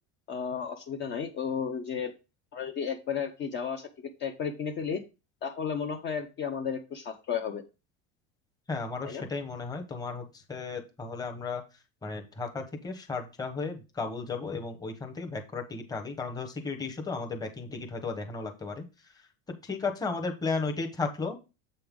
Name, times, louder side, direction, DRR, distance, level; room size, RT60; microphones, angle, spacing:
voice 1, 0.3-2.1 2.5-3.9 4.2-5.0 5.4-7.6 9.0-9.2, left 7 dB, 30° left, 3 dB, 0.8 m, -33 dB
voice 2, 8.7-11.6 12.0-18.9 19.6-21.4, left 4 dB, 10° left, 3 dB, 1.1 m, -34 dB
7.8 x 5.5 x 3.7 m, 0.28 s
cardioid pair, 160°, 34 cm